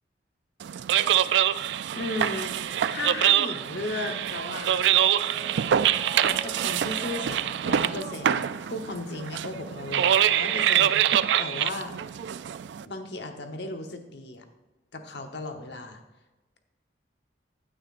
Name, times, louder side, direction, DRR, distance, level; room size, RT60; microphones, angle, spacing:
sound 1, 0.6-12.8, right 10 dB, 70° right, 0.3 m, -25 dB
voice 1, 1.9-4.9 6.1-11.9 12.8-14.4 14.9-16.0, left 2 dB, 65° left, 5 dB, 1.0 m, -36 dB
Mallet percussion, 4.7-10.2 10.5-10.6, right 3 dB, 25° left, 1.3 m, -46 dB
15.0 x 8.7 x 2.5 m, 1.1 s
head